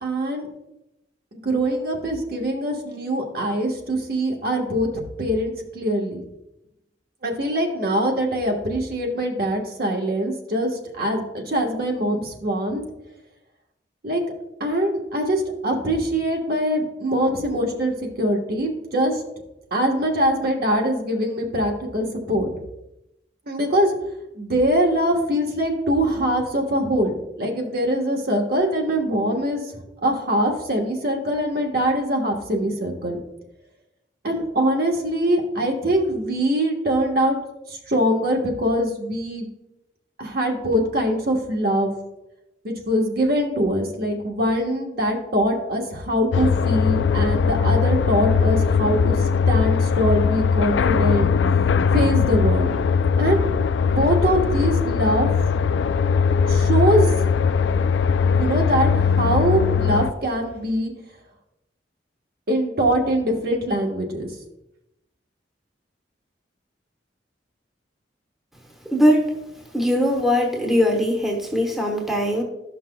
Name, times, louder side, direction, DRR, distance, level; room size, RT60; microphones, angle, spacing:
voice 1, 0.0-0.5 1.3-4.9 5.2-6.2 7.2-12.8 14.0-14.2 14.6-19.2 19.7-22.5 23.5-23.9 24.3-29.7 30.0-33.2 34.2-37.4 37.7-39.5 40.2-42.0 42.6-51.3 51.9-52.7 53.2-53.5 53.8-55.3 56.5-57.1 58.4-60.9 62.5-64.3, equal, 55° right, 1 dB, 1.2 m, -23 dB
sound 1, 46.3-60.1, left 6 dB, 75° left, 0.3 m, -20 dB
voice 2, 68.9-69.3 69.7-72.4, equal, ahead, 0 dB, 1.1 m, -20 dB
12.5 x 5.8 x 2.2 m, 0.91 s
head